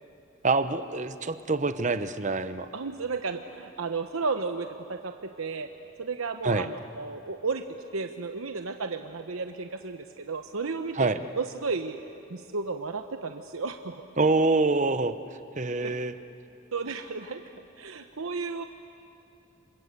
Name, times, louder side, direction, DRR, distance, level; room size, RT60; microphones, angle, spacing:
voice 1, 0.4-2.7 6.4-6.7 11.0-11.2 14.2-15.1 15.6-16.1, right 3 dB, 35° right, 11 dB, 0.9 m, -25 dB
voice 2, 2.7-5.7 6.0-7.6 7.9-11.1 11.4-12.0 12.3-14.0 15.8-15.9 16.7-17.4 17.8-18.6, right 4 dB, 85° right, 6 dB, 1.0 m, -33 dB
27.5 x 26.5 x 8.2 m, 2.7 s
head